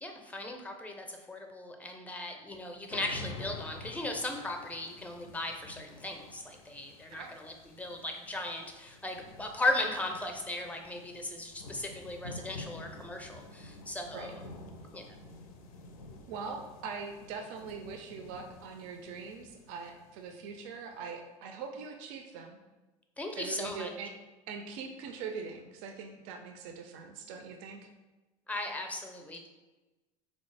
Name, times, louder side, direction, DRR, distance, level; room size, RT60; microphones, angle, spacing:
voice 1, 0.0-14.4 14.9-15.2 23.2-23.9 28.5-29.5, left 2 dB, 10° left, 3 dB, 0.5 m, -37 dB
sound 1, 2.9-20.7, left 2 dB, 80° left, 0.4 m, -49 dB
voice 2, 16.3-22.6 23.4-24.1 24.5-27.9, right 5 dB, 65° right, 4 dB, 0.4 m, -42 dB
4.0 x 2.0 x 3.2 m, 1.1 s
hypercardioid pair, 80°, 18 cm